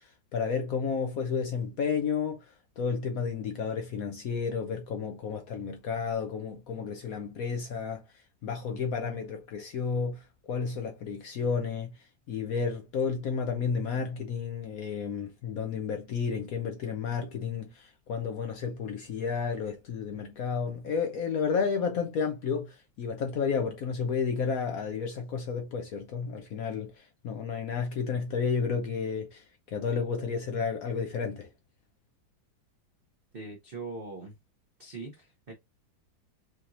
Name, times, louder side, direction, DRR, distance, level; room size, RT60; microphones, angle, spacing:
voice 1, 0.0-12.0 12.3-31.5, left 6 dB, 70° left, 0.8 m, -32 dB
voice 2, 33.3-34.3 34.8-35.5, right 3 dB, 90° right, 0.5 m, -41 dB
4.9 x 2.9 x 2.5 m
omnidirectional pair, 2.1 m